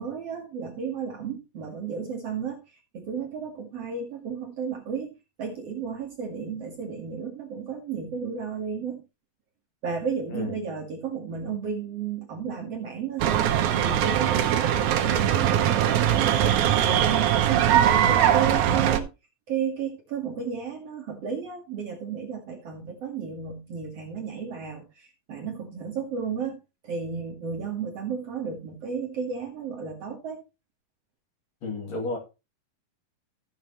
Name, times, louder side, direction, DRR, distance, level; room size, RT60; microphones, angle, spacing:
voice 1, 0.0-5.1 5.4-9.0 9.8-16.6 16.8-19.1 19.5-30.4, right 6 dB, 55° right, 2.1 m, -33 dB
sound 1, 13.2-19.0, right 10 dB, 70° right, 2.2 m, -21 dB
voice 2, 31.6-32.2, left 3 dB, 50° left, 3.8 m, -31 dB
14.0 x 7.3 x 3.0 m
omnidirectional pair, 4.0 m